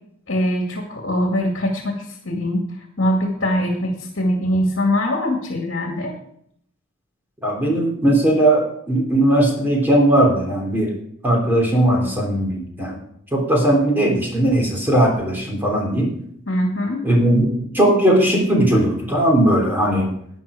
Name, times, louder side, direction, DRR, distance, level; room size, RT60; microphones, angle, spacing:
voice 1, 0.3-6.1 16.5-17.0, left 1 dB, 60° left, 1 dB, 2.1 m, -22 dB
voice 2, 7.4-10.9 11.2-13.0 13.3-16.1 17.0-17.5 17.7-20.1, right 1 dB, 10° right, -1 dB, 3.1 m, -18 dB
12.0 x 9.2 x 5.0 m, 0.70 s
head